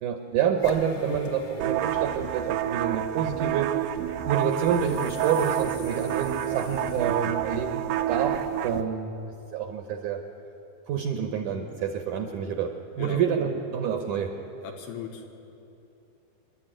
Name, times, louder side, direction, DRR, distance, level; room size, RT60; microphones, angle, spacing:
voice 1, 0.0-3.8 4.2-9.2 9.5-10.2 10.9-14.3, right 7 dB, 70° right, 4 dB, 2.1 m, -28 dB
sound 1, 0.6-8.8, left 3 dB, 45° left, 2.3 m, -47 dB
sound 2, 1.6-8.8, right 12 dB, 85° right, 1.9 m, -29 dB
voice 2, 6.7-7.0 13.0-13.2 14.6-15.4, left 7 dB, 80° left, 2 dB, 3.3 m, -38 dB
25.5 x 12.5 x 9.0 m, 2.8 s
omnidirectional pair, 4.7 m